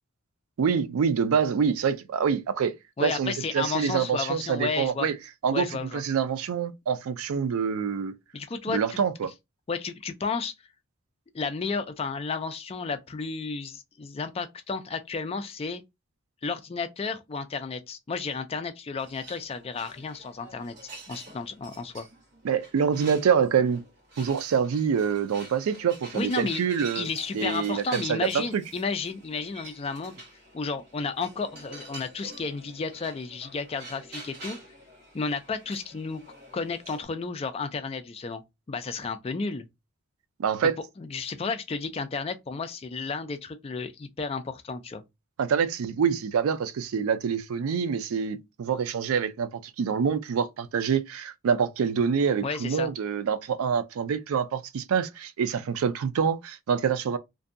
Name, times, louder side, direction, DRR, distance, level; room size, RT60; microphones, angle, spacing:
voice 1, 0.6-2.7 3.0-5.1 5.4-5.7 5.9-8.1 8.7-9.3 22.4-23.8 24.2-27.1 27.3-28.6 40.4-40.8 45.4-57.2, right 6 dB, 85° right, 0.4 m, -26 dB
voice 2, 3.0-5.1 5.5-6.0 8.3-9.3 9.7-10.5 11.3-15.8 16.4-20.7 21.1-22.1 26.1-26.6 27.0-30.2 30.5-34.6 35.1-36.2 36.5-38.4 38.7-39.7 41.0-45.0 52.4-52.9, left 4 dB, 25° left, 0.3 m, -32 dB
sound 1, 19.0-37.0, right 2 dB, 55° right, 1.2 m, -47 dB
2.6 x 2.2 x 2.5 m
head